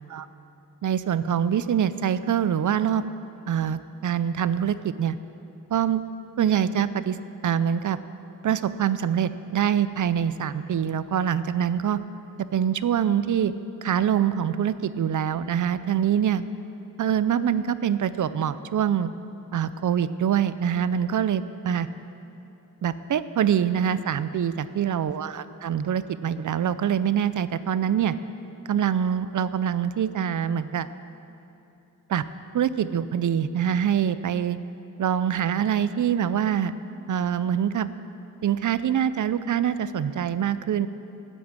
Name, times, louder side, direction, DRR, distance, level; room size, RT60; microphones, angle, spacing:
voice 1, 0.8-3.0 3.5-5.2 5.7-6.0 6.4-7.2 7.4-8.0 8.4-12.0 12.5-13.5 13.8-16.4 17.0-19.1 19.5-21.9 22.8-28.1 28.7-30.9 32.1-32.2 32.5-34.6 35.0-36.7 37.1-37.9 38.4-40.9, right 9 dB, 60° right, 14 dB, 0.5 m, -24 dB
11.5 x 9.2 x 7.4 m, 2.8 s
cardioid pair, 80°, 34 cm